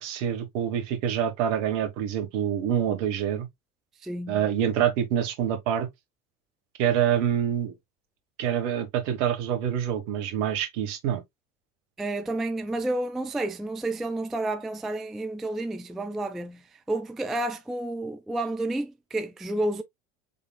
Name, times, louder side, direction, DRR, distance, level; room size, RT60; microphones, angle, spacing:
voice 1, 0.0-3.5 4.3-5.9 6.8-7.7 8.4-11.2, right 9 dB, 65° right, 1.3 m, -26 dB
voice 2, 4.0-4.4 12.0-19.8, right 2 dB, ahead, 0.3 m, -30 dB
5.2 x 3.6 x 2.2 m
hypercardioid pair, 70°, 39 cm